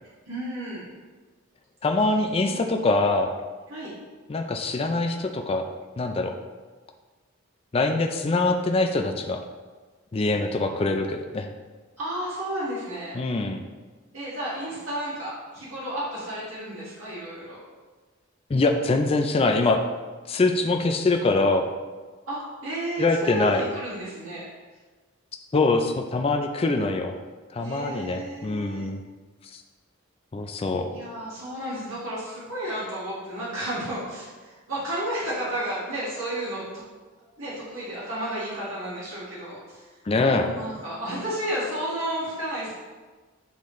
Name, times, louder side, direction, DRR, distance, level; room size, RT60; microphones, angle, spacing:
voice 1, 0.3-0.8 2.5-2.6 3.7-3.9 12.0-13.2 14.1-17.6 22.3-24.5 27.6-28.9 30.9-36.6 37.2-39.9 40.5-42.7, right 1 dB, 75° right, -8 dB, 1.9 m, -32 dB
voice 2, 1.8-3.3 4.3-5.6 6.0-6.4 7.7-9.4 10.1-11.5 13.1-13.6 18.5-19.8 20.3-21.7 23.0-23.6 25.5-27.1 27.5-29.0 29.5-29.6 30.3-30.9 40.1-40.5, left 3 dB, 25° left, 4 dB, 0.4 m, -24 dB
8.5 x 3.9 x 3.1 m, 1.3 s
head